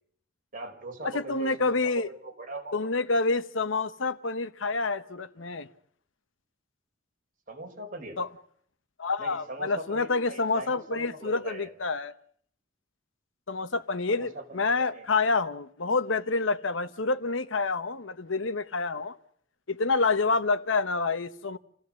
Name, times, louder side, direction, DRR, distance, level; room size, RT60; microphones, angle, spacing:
voice 1, 0.5-2.8 3.1-3.2 7.5-8.2 9.2-11.7 14.1-14.6 14.9-15.0, right 2 dB, 45° right, 5.1 m, -41 dB
voice 2, 1.0-2.1 2.7-5.7 8.2-8.3 9.0-12.1 13.5-19.2 19.7-21.6, left 3 dB, 70° left, 1.1 m, -28 dB
28.5 x 16.0 x 7.6 m
head